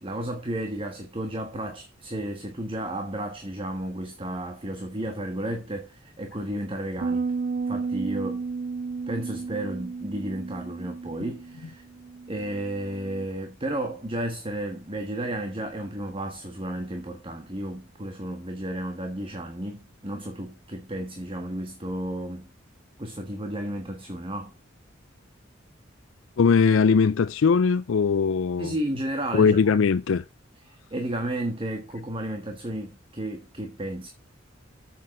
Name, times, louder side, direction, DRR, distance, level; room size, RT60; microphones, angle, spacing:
voice 1, 0.0-7.3 7.7-8.4 9.1-11.8 12.3-22.5 23.0-24.5 28.6-29.7 30.7-34.1, right 1 dB, 30° right, 1.5 m, -33 dB
sound 1, 7.0-13.3, right 4 dB, 45° right, 0.4 m, -33 dB
voice 2, 26.4-28.7 29.3-30.2, left 5 dB, 90° left, 0.4 m, -20 dB
7.7 x 7.4 x 6.5 m
head